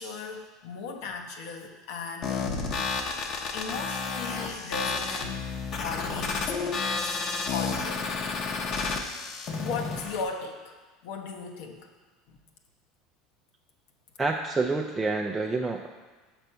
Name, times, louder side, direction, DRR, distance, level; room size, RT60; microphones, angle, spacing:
voice 1, 0.0-2.6 3.5-7.2 7.5-8.2 9.6-11.9 12.3-12.4, left 4 dB, 70° left, 2 dB, 0.9 m, -37 dB
sound 1, 2.2-10.2, left 4 dB, 40° left, 0.8 m, -31 dB
voice 2, 14.2-15.9, right 3 dB, 15° right, 1 dB, 0.4 m, -28 dB
6.1 x 5.8 x 5.5 m, 1.3 s
supercardioid pair, 140°, 0 cm